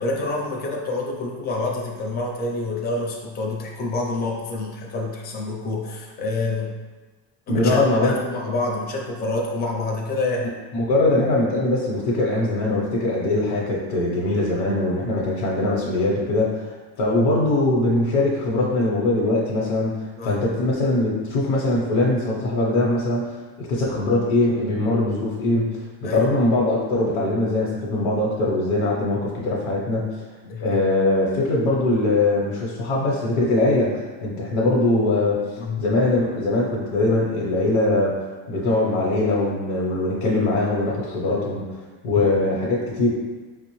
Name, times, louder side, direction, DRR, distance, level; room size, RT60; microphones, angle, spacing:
voice 1, 0.0-6.8 7.5-10.5 20.2-20.4 26.0-26.3 30.4-30.8 35.6-35.8 40.2-40.4 42.2-42.3, left 2 dB, 20° left, -1 dB, 0.4 m, -27 dB
voice 2, 7.5-8.2 10.7-30.1 30.6-35.5 35.8-38.2 38.5-41.6 42.0-43.1, left 2 dB, 80° left, -4 dB, 0.9 m, -22 dB
4.8 x 2.0 x 3.0 m, 1.3 s
cardioid pair, 145°, 47 cm